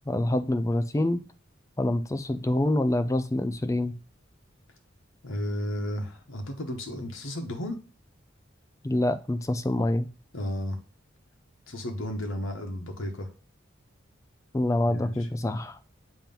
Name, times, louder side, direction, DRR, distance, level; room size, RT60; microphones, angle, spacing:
voice 1, 0.1-1.2 1.8-3.9 8.8-10.1 14.5-15.9, left 1 dB, 15° left, 11 dB, 0.4 m, -26 dB
voice 2, 5.2-7.8 10.3-10.8 11.7-13.3 14.8-15.1, equal, 85° left, 3 dB, 1.1 m, -33 dB
7.3 x 2.9 x 5.3 m, 0.34 s
head